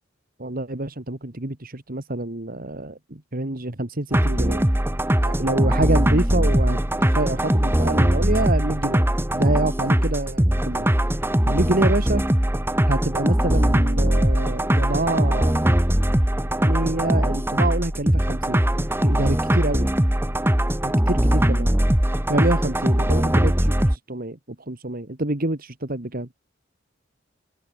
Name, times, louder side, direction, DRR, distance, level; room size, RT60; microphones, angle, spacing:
voice 1, 0.4-4.7 5.3-6.8 7.1-9.0 9.3-10.9 11.5-12.2 12.9-15.5 16.6-19.9 20.8-21.7 22.3-24.4 24.7-26.3, right 2 dB, 50° right, 2.1 m, -27 dB
sound 1, 4.1-24.0, equal, 10° right, 1.4 m, -20 dB
open air
head